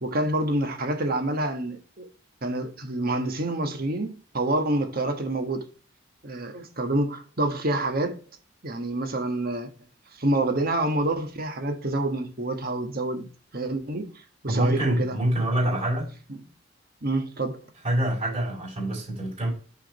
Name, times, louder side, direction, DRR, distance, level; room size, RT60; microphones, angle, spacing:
voice 1, 0.0-2.1 2.4-5.7 6.2-8.2 8.6-9.7 10.2-13.3 13.5-15.2 15.6-15.7 17.0-17.6, right 1 dB, 50° right, 1.3 m, -27 dB
voice 2, 14.5-16.1 17.8-19.5, right 1 dB, 30° right, 4.0 m, -25 dB
6.5 x 4.8 x 4.4 m
head